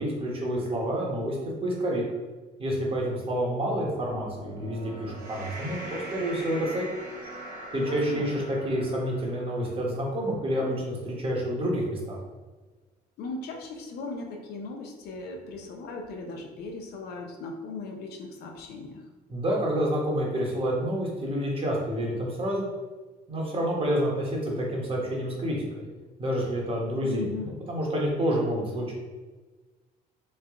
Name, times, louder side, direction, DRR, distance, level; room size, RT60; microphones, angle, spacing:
voice 1, 0.0-1.4 1.6-2.0 2.6-6.9 7.7-12.2 19.3-22.7 23.3-25.9 26.2-28.9, equal, 35° right, -3 dB, 1.0 m, -28 dB
sound 1, 4.0-10.5, right 1 dB, 60° right, 0.9 m, -42 dB
voice 2, 7.7-8.3 13.2-19.1 27.0-27.5, left 3 dB, 70° left, 3 dB, 0.6 m, -38 dB
3.2 x 2.3 x 3.5 m, 1.3 s
cardioid pair, 110°, 17 cm